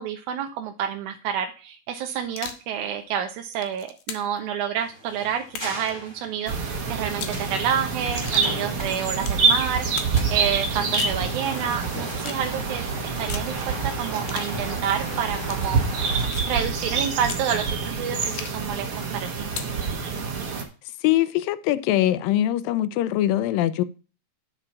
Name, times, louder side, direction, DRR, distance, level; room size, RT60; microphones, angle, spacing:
voice 1, 0.0-12.9 13.2-15.8 16.5-19.3, right 8 dB, 75° right, 1.9 m, -29 dB
sound 1, 2.2-2.7 3.3-4.4 5.5-5.9 7.1-7.4 8.2-8.5 9.2-9.4 10.0-10.2 10.7-11.2 12.2-12.4 13.3-13.5 14.3-14.5 15.4-15.7 16.3-16.6 17.2-17.5 18.2-18.7 19.5-19.8, left 8 dB, 70° left, 2.4 m, -37 dB
sound 2, 4.8-16.3, equal, 10° left, 1.7 m, -38 dB
sound 3, 6.5-20.6, right 5 dB, 50° right, 2.1 m, -27 dB
voice 2, 21.0-23.8, left 13 dB, 85° left, 2.3 m, -22 dB
8.9 x 5.1 x 5.7 m
omnidirectional pair, 4.0 m